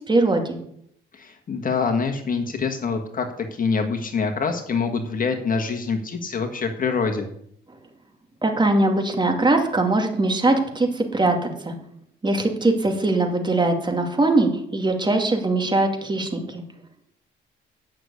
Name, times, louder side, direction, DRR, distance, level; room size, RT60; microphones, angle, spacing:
voice 1, 0.1-0.6 8.4-11.4 11.6-11.7 12.2-16.6, right 2 dB, 25° right, 3 dB, 2.4 m, -21 dB
voice 2, 1.1-7.3, left 5 dB, 45° left, 5 dB, 1.6 m, -25 dB
9.2 x 6.5 x 8.3 m, 0.70 s
cardioid pair, 90°, 20 cm